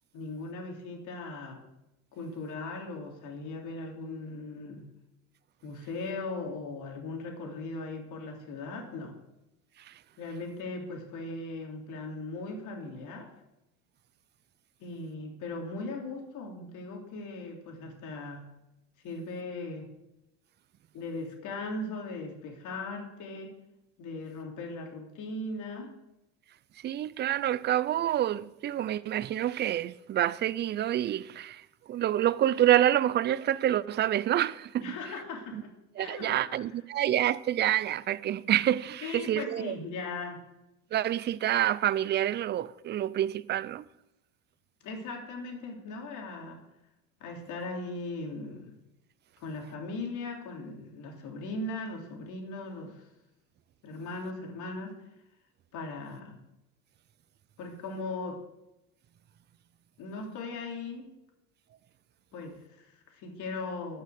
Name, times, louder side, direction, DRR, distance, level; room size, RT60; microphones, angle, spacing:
voice 1, 0.1-1.6 2.1-4.9 5.6-9.1 10.2-13.3 14.8-18.5 19.0-19.9 20.9-23.5 24.0-25.9 34.8-36.8 39.0-40.4 44.8-46.6 47.2-48.7 49.4-53.1 53.8-54.9 55.7-56.4 57.6-58.4 60.0-61.1 62.3-64.0, left 3 dB, 50° left, 3.3 m, -38 dB
voice 2, 26.8-31.6 31.9-34.8 35.5-35.6 36.0-39.7 40.9-43.8, right 12 dB, 30° right, 0.4 m, -27 dB
12.5 x 6.7 x 6.5 m
supercardioid pair, 105°, 38 cm